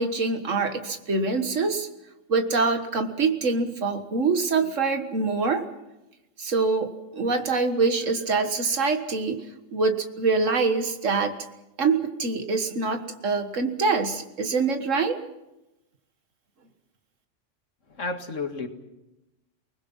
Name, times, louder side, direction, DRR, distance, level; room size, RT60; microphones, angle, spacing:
voice 1, 0.0-1.9 2.3-5.6 6.4-9.5 9.7-11.3 11.8-15.2, right 4 dB, 85° right, 6 dB, 1.9 m, -25 dB
voice 2, 17.9-18.7, left 3 dB, 85° left, 6 dB, 2.2 m, -31 dB
29.0 x 20.0 x 5.5 m, 0.94 s
omnidirectional pair, 1.3 m